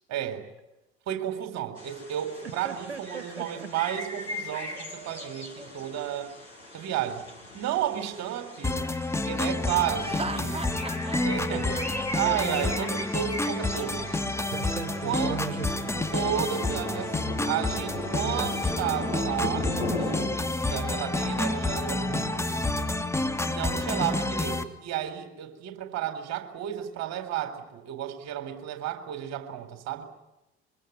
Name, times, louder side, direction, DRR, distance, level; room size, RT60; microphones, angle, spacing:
voice 1, 0.1-0.5 1.1-6.3 6.7-7.3 7.5-8.8 9.2-10.7 11.2-11.8 12.1-14.1 15.0-15.4 16.1-22.8 23.4-30.1, right 11 dB, 55° right, 9 dB, 4.2 m, -32 dB
sound 1, 1.8-20.3, left 1 dB, 90° left, 5.3 m, -38 dB
voice 2, 2.4-3.7 14.5-15.9, right 6 dB, 85° right, 6 dB, 1.7 m, -37 dB
sound 2, 8.6-24.6, left 2 dB, 10° left, 2.6 m, -29 dB
Laughter, 9.9-13.9, right 3 dB, 20° right, 3.0 m, -38 dB
24.0 x 24.0 x 9.4 m, 0.95 s
figure-of-eight pair, 55°, 32 cm